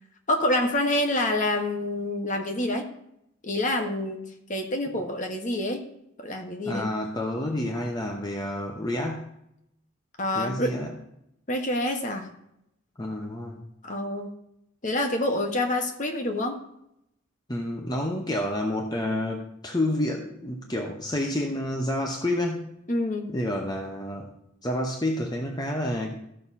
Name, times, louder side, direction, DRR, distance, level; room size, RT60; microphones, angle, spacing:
voice 1, 0.3-2.8 3.4-4.2 4.5-5.8 6.2-6.9 10.2-10.7 11.5-12.3 13.8-14.3 14.8-16.6 22.9-23.3, left 1 dB, 40° left, 4 dB, 1.3 m, -27 dB
voice 2, 6.7-9.3 10.3-10.9 13.0-13.7 17.5-22.7 23.3-24.3 24.6-26.1, left 1 dB, 20° left, 1 dB, 0.9 m, -29 dB
14.0 x 6.0 x 4.2 m, 0.80 s
head